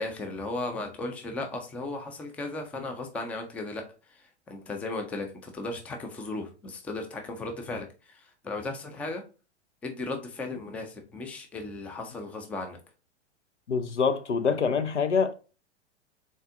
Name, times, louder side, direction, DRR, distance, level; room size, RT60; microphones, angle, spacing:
voice 1, 0.0-3.8 4.1-9.2 9.8-12.8, left 2 dB, 5° left, 0.3 m, -36 dB
voice 2, 13.7-15.3, left 5 dB, 90° left, 0.6 m, -25 dB
3.9 x 3.6 x 2.5 m
figure-of-eight pair, 100°, 34 cm